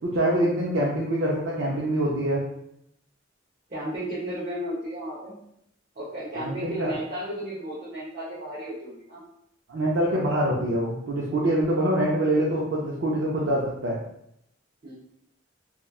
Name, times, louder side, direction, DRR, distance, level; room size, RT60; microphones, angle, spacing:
voice 1, 0.0-2.4 6.3-6.9 9.7-14.0, right 1 dB, 75° right, -5 dB, 0.5 m, -25 dB
voice 2, 3.7-5.4 5.9-9.2 14.8-14.9, equal, 40° right, -9 dB, 0.7 m, -34 dB
2.9 x 2.2 x 2.3 m, 0.75 s
head